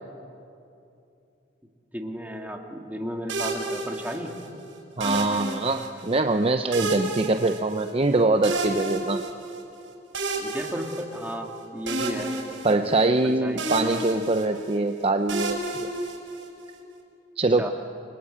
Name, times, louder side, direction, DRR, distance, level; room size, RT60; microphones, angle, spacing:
voice 1, 1.9-4.3 10.4-12.3 13.2-13.6 17.6-17.7, equal, 10° right, 2 dB, 2.2 m, -33 dB
sound 1, 3.3-4.5 5.0-6.1 6.7-8.1 8.4-9.6 10.1-11.5 11.9-13.3 13.6-14.8 15.3-16.7, right 2 dB, 85° right, 6.2 m, -31 dB
voice 2, 5.0-9.2 12.6-15.9 17.4-17.7, right 2 dB, 30° right, 7 dB, 0.7 m, -23 dB
29.5 x 23.5 x 8.6 m, 2.7 s
head